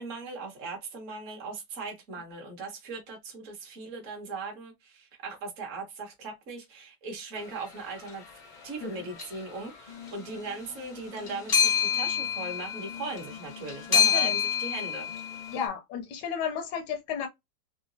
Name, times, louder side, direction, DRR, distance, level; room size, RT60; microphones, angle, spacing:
voice 1, 0.0-8.2 8.6-15.1, right 3 dB, 50° right, 1.1 m, -39 dB
sound 1, 7.9-8.1 9.2-9.6 9.9-15.7, left 7 dB, 60° left, 0.4 m, -28 dB
voice 2, 13.9-14.4 15.5-17.3, left 7 dB, 75° left, 1.1 m, -33 dB
3.7 x 2.3 x 2.6 m
omnidirectional pair, 1.9 m